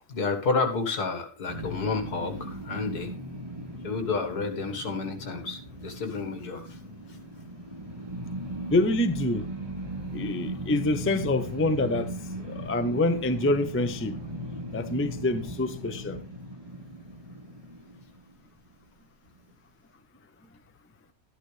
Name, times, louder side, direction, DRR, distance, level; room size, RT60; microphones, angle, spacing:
voice 1, 0.1-3.1 3.8-6.8, left 4 dB, 85° left, 2.2 m, -30 dB
sound 1, 1.5-18.7, equal, 20° right, 3.1 m, -38 dB
voice 2, 8.7-9.5 10.1-12.1 12.4-14.2 14.7-16.2, left 2 dB, 15° left, 0.5 m, -26 dB
12.5 x 11.0 x 3.3 m
omnidirectional pair, 1.6 m